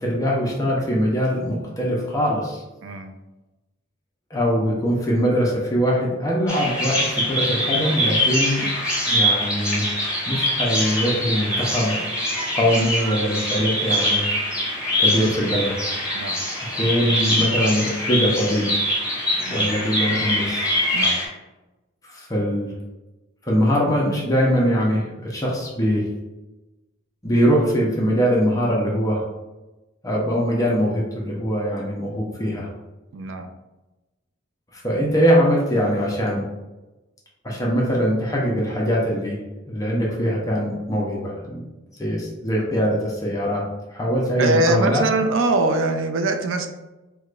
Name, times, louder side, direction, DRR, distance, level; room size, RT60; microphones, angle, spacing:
voice 1, 0.0-2.6 4.3-8.7 9.0-9.9 10.3-12.0 12.5-14.3 15.0-15.7 16.7-18.7 19.5-20.7 22.0-22.7 23.4-26.1 27.2-29.2 30.0-32.7 34.7-36.4 37.4-39.4 39.7-41.6 42.0-43.6 43.9-45.0, equal, 20° left, -3 dB, 0.6 m, -22 dB
voice 2, 2.8-3.1 16.1-16.4 19.4-19.7 20.9-21.2 33.1-33.5 44.4-46.7, right 2 dB, 85° right, 7 dB, 0.4 m, -22 dB
Bird vocalization bird call bird song, 6.5-21.3, left 1 dB, 5° right, 1.1 m, -23 dB
4.6 x 2.2 x 2.4 m, 1.1 s
head